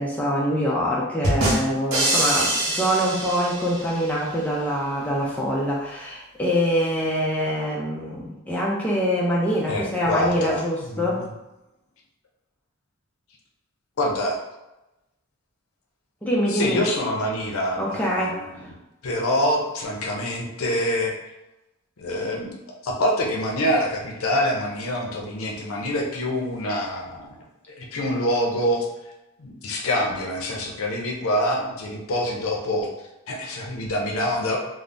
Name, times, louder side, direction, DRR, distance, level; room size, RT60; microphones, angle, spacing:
voice 1, 0.0-11.2 16.2-16.8 17.8-18.4, equal, 5° left, -4 dB, 0.3 m, -24 dB
sound 1, 1.2-4.1, right 1 dB, 90° right, 0.8 m, -24 dB
voice 2, 9.7-11.3 14.0-14.4 16.5-18.5 19.0-21.1 22.0-27.4 27.7-28.9 29.4-32.9 33.3-34.6, left 1 dB, 80° left, 0 dB, 0.6 m, -26 dB
3.3 x 2.0 x 2.5 m, 0.96 s
head